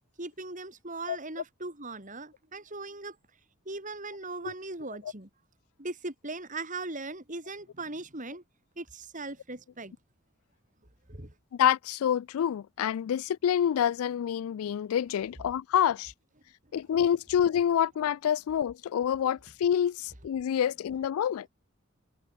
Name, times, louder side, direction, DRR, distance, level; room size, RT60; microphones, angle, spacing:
voice 1, 0.2-3.2 3.6-5.3 5.8-8.4 8.8-9.9 11.1-11.3, right 2 dB, 35° right, 4.7 m, -39 dB
voice 2, 11.5-16.1 16.7-21.5, left 9 dB, 80° left, 0.3 m, -27 dB
head